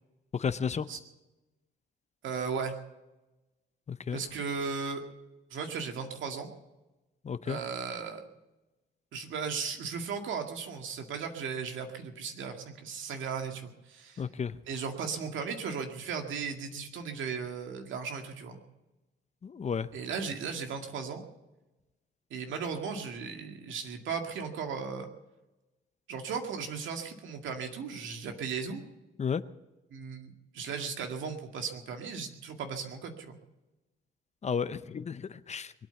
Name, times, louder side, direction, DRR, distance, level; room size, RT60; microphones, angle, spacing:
voice 1, 0.3-0.9 3.9-4.2 7.2-7.6 14.2-14.5 19.4-19.9 29.2-29.4 34.4-35.7, left 6 dB, 35° left, 14 dB, 0.7 m, -32 dB
voice 2, 2.2-2.8 4.1-5.0 5.5-6.5 7.5-8.2 9.1-14.3 14.7-18.6 19.9-21.2 22.3-25.1 26.1-28.8 29.9-33.4, right 5 dB, 75° right, 4 dB, 2.1 m, -36 dB
22.5 x 9.0 x 7.0 m, 1.1 s
cardioid pair, 90°, 20 cm